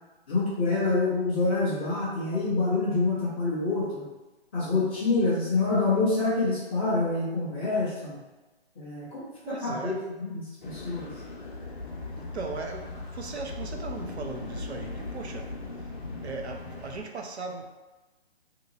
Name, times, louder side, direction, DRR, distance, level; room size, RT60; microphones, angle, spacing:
voice 1, 0.3-4.0 4.5-8.2 8.7-11.1, left 3 dB, 10° left, -11 dB, 0.6 m, -27 dB
voice 2, 9.4-10.0 12.2-15.6 16.2-17.6, right 4 dB, 90° right, 3 dB, 0.7 m, -38 dB
sound 1, 10.6-17.0, left 3 dB, 50° left, 0.9 m, -38 dB
2.9 x 2.7 x 3.9 m, 1.2 s
hypercardioid pair, 165°, 32 cm